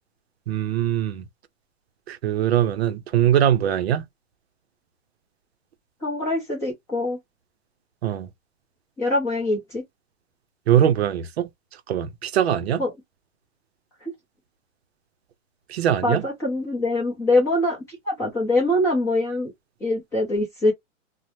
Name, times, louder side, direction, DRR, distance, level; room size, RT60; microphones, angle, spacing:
voice 1, 0.5-1.2 2.1-4.0 8.0-8.3 10.7-11.5 11.9-12.8 15.7-16.2, right 10 dB, 55° right, 0.6 m, -21 dB
voice 2, 6.0-7.2 9.0-9.8 12.8-12.9 14.0-14.1 16.0-19.5 19.8-20.7, left 1 dB, 10° left, 0.5 m, -23 dB
2.6 x 2.1 x 3.0 m
hypercardioid pair, 150°, 38 cm